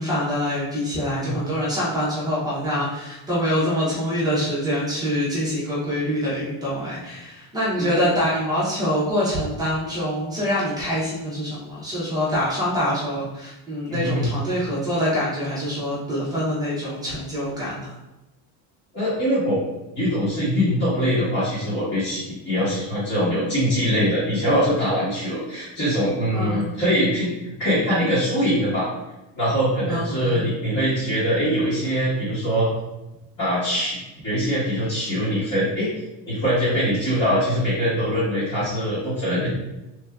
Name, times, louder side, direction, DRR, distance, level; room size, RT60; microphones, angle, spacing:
voice 1, 0.0-17.9 26.3-26.6 29.9-30.4, equal, 10° right, -8 dB, 0.7 m, -25 dB
voice 2, 13.9-14.3 18.9-19.6 19.9-28.9 29.4-32.7 33.4-34.0 34.2-35.9 36.3-39.5, equal, 30° left, -12 dB, 1.2 m, -23 dB
3.3 x 2.6 x 2.3 m, 0.99 s
cardioid pair, 170°, 49 cm